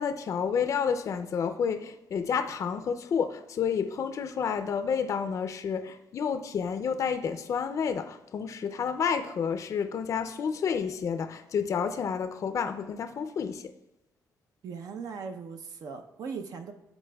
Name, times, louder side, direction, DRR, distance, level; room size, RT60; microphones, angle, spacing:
voice 1, 0.0-13.7, left 6 dB, 50° left, 0.4 m, -30 dB
voice 2, 14.6-16.7, right 5 dB, 65° right, 0.5 m, -39 dB
11.0 x 4.1 x 2.2 m
cardioid pair, 100°, 7 cm